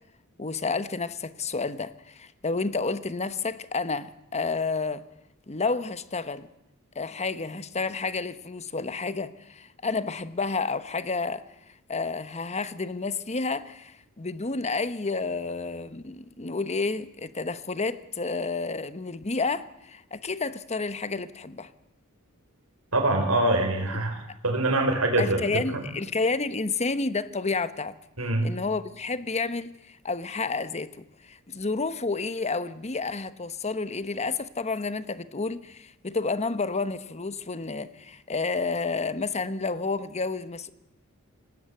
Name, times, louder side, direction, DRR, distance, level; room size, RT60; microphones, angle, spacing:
voice 1, 0.4-5.0 5.5-6.5 6.9-11.4 11.9-21.7 24.3-24.4 25.2-27.9 28.4-40.7, left 4 dB, 30° left, 1.1 m, -30 dB
voice 2, 22.9-24.2 24.4-25.8 28.2-28.5, right 2 dB, 75° right, 5.0 m, -24 dB
25.5 x 19.0 x 7.8 m
head